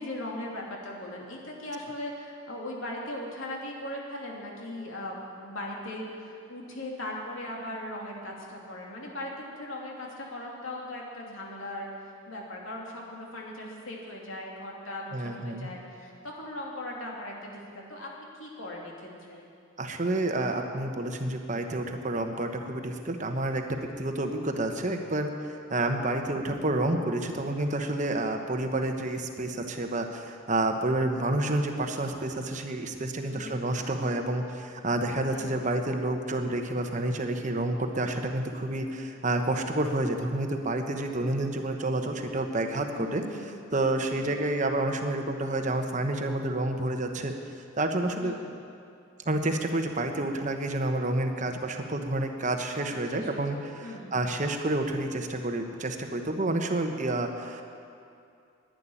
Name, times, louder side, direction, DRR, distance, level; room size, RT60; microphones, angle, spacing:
voice 1, 0.0-11.9 12.3-19.4 33.3-33.6 35.3-35.6 43.0-43.7 44.1-44.3 48.2-48.5 53.1-54.2, left 1 dB, 85° left, -2 dB, 2.9 m, -39 dB
voice 2, 15.1-15.7 19.8-23.6 24.0-47.3 47.8-48.3 49.2-57.6, right 2 dB, 40° right, 5 dB, 1.1 m, -29 dB
11.5 x 10.5 x 9.9 m, 2.5 s
head